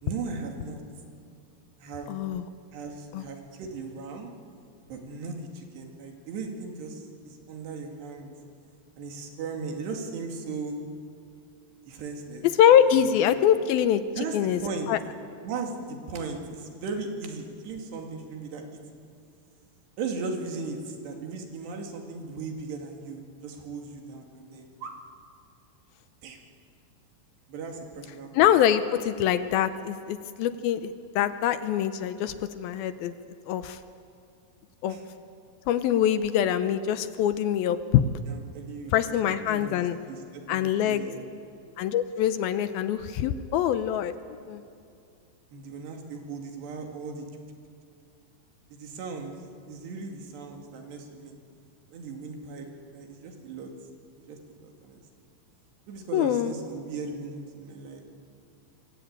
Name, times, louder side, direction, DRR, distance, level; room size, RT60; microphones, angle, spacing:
voice 1, 0.0-0.8 1.8-2.1 2.7-4.3 4.9-8.4 9.0-10.8 11.9-12.5 14.2-14.9 15.4-18.8 20.0-25.0 26.2-26.4 27.5-28.3 34.9-35.0 38.3-38.9 39.5-41.3 45.5-47.3 48.7-49.3 49.7-51.3 51.9-53.7 54.3-55.0 55.9-58.0, right 4 dB, 85° right, 3 dB, 4.6 m, -37 dB
voice 2, 2.1-2.4 3.1-3.2 12.4-14.6 14.9-15.0 28.3-33.1 33.5-33.8 34.8-35.0 35.7-38.0 38.9-40.0 40.5-41.1 41.8-44.1 44.5-44.6 56.1-56.5, left 10 dB, 75° left, 11 dB, 2.4 m, -24 dB
26.0 x 24.0 x 8.9 m, 2.4 s
omnidirectional pair, 4.7 m